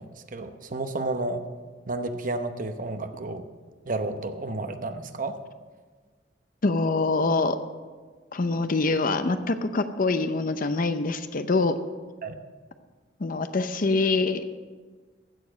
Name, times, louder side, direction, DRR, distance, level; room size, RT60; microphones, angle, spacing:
voice 1, 0.0-1.4 1.9-3.4 3.9-5.4 12.2-12.4, right 2 dB, 45° right, 8 dB, 0.9 m, -31 dB
voice 2, 6.6-7.6 8.3-11.8 13.2-14.4, left 3 dB, 50° left, 10 dB, 0.6 m, -24 dB
15.5 x 7.0 x 6.3 m, 1.4 s
head